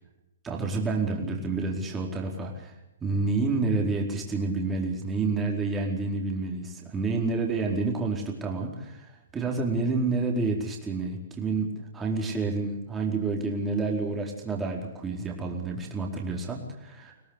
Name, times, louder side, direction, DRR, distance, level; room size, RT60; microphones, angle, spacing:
voice 1, 0.4-2.7 3.0-11.7 11.9-17.1, right 3 dB, 15° right, 0 dB, 4.6 m, -29 dB
25.0 x 18.0 x 8.3 m, 0.88 s
hypercardioid pair, 130°, 0 cm